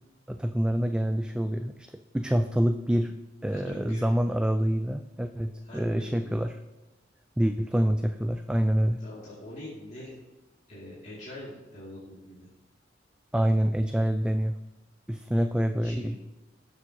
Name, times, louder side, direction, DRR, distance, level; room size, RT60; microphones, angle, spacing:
voice 1, 0.3-3.1 3.4-6.5 7.4-9.0 13.3-14.6 15.1-16.2, equal, 5° right, 7 dB, 0.3 m, -26 dB
voice 2, 3.5-4.0 5.6-6.3 9.0-10.1 10.7-12.5 15.8-16.2, left 1 dB, 40° left, -9 dB, 2.7 m, -43 dB
17.5 x 7.0 x 3.0 m, 1.1 s
head